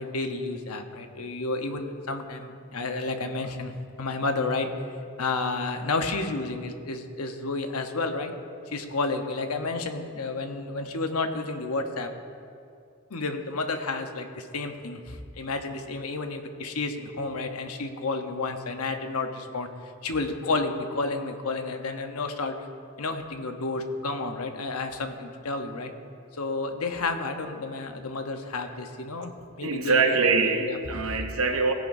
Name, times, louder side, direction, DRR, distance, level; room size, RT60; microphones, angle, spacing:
voice 1, 0.0-3.7 4.0-4.7 5.2-8.3 8.7-12.1 13.1-22.6 23.0-25.9 26.3-30.2 30.6-31.2, left 3 dB, 90° left, 5 dB, 1.0 m, -31 dB
voice 2, 29.6-31.7, right 4 dB, 75° right, 6 dB, 0.9 m, -24 dB
17.5 x 10.5 x 2.7 m, 2.4 s
head